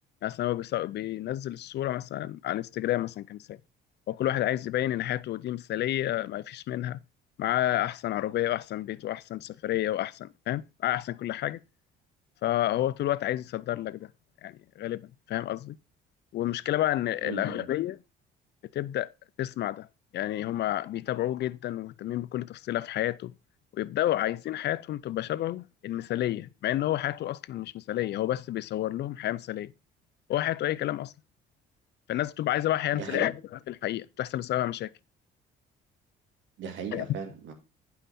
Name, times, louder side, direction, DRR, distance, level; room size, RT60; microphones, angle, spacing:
voice 1, 0.2-3.6 4.1-7.0 7.4-11.6 12.4-14.1 14.4-15.8 16.3-18.0 18.7-19.1 19.4-19.9 20.1-23.3 23.7-29.7 30.3-31.1 32.1-34.9 36.9-37.1, left 13 dB, 60° left, 0.5 m, -30 dB
voice 2, 17.2-17.6 32.9-33.3 36.6-37.5, right 6 dB, 70° right, 2.2 m, -37 dB
10.0 x 5.7 x 4.2 m
cardioid pair, 105°, 20 cm